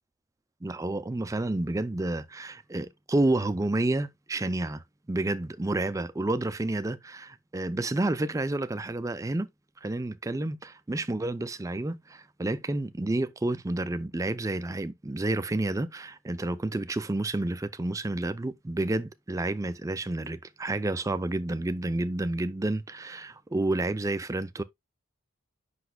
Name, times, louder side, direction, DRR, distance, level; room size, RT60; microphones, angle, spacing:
voice 1, 0.6-4.8 5.1-9.5 9.8-24.6, right 2 dB, 15° right, 0.4 m, -30 dB
7.9 x 5.8 x 2.2 m
head